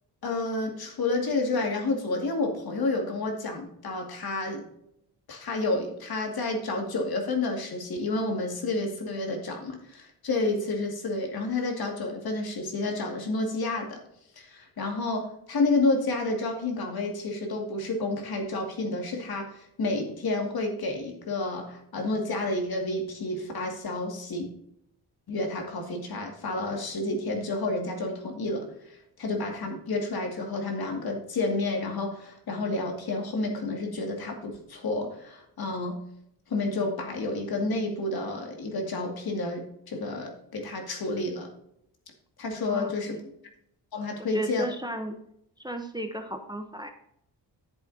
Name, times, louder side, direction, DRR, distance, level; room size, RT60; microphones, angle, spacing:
voice 1, 0.2-4.7 5.3-14.0 14.4-24.5 25.3-28.7 29.2-36.0 36.5-41.5 42.4-43.2 43.9-44.7, left 2 dB, 60° left, 2 dB, 2.4 m, -30 dB
voice 2, 42.7-43.3 44.2-45.2 45.6-46.9, equal, 10° right, 5 dB, 0.9 m, -35 dB
10.5 x 8.0 x 2.8 m, 0.76 s
cardioid pair, 100°, 41 cm